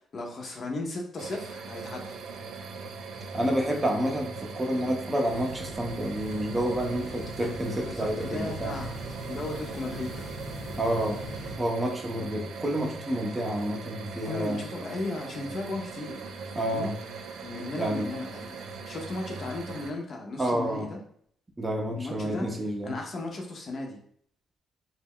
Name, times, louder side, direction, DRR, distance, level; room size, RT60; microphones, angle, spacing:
voice 1, 0.1-2.2 7.9-10.3 14.2-16.3 16.7-16.9 17.4-18.6 18.8-21.0 22.0-22.5 22.8-24.0, left 2 dB, 45° left, 1 dB, 0.6 m, -36 dB
sound 1, 1.2-19.9, right 4 dB, 80° right, 0.3 m, -40 dB
voice 2, 3.3-8.8 10.8-11.3 11.5-14.6 16.5-16.9 17.8-18.1 20.4-20.9 21.6-22.9, right 1 dB, 20° right, 1 dB, 0.5 m, -29 dB
sound 2, 5.2-11.6, equal, 70° left, 0.9 m, -41 dB
2.2 x 2.0 x 3.5 m, 0.62 s
cardioid pair, 90°, 0 cm